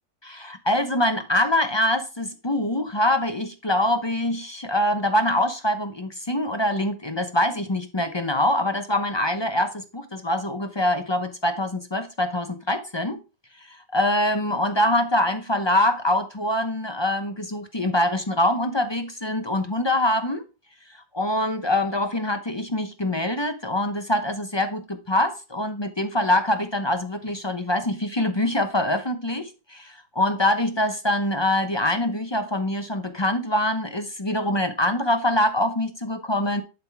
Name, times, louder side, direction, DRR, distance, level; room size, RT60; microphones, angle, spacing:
voice 1, 0.2-13.2 13.7-20.4 21.1-36.6, left 1 dB, 30° left, 0.5 m, -24 dB
11.5 x 3.9 x 4.7 m
omnidirectional pair, 1.9 m